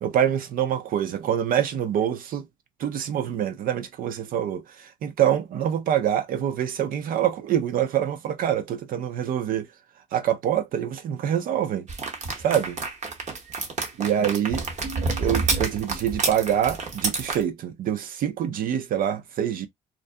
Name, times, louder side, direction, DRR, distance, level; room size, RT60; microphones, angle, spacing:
voice 1, 0.0-2.4 2.8-9.7 10.1-11.9 12.4-12.8 14.0-14.7 15.2-19.7, right 10 dB, 70° right, 0.5 m, -25 dB
sound 1, 11.9-17.4, right 4 dB, 50° right, 0.9 m, -28 dB
2.5 x 2.1 x 2.5 m
cardioid pair, 75°, 15 cm